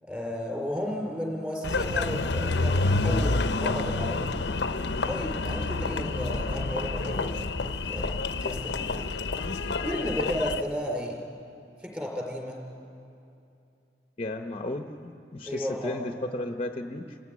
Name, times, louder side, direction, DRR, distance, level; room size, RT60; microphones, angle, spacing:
voice 1, 0.0-4.3 5.1-9.1 9.8-11.2 11.8-12.6 15.5-15.9, equal, 10° right, 0 dB, 4.5 m, -33 dB
Engine, 1.6-10.6, left 3 dB, 80° left, 0.7 m, -28 dB
voice 2, 14.2-17.2, left 1 dB, 35° left, 5 dB, 0.9 m, -34 dB
28.0 x 16.0 x 9.7 m, 2.6 s
head